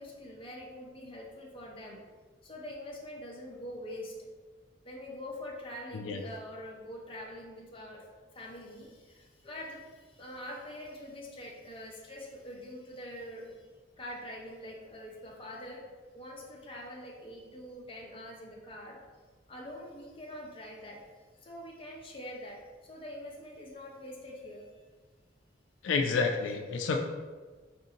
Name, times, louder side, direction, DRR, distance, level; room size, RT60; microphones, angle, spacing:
voice 1, 0.0-2.0 2.4-4.2 4.8-13.6 14.0-15.9 16.1-19.0 19.5-21.0 21.4-24.7, left 1 dB, 30° left, -2 dB, 0.6 m, -44 dB
voice 2, 25.8-27.0, left 4 dB, 80° left, 4 dB, 0.3 m, -29 dB
5.0 x 2.6 x 2.7 m, 1.4 s
head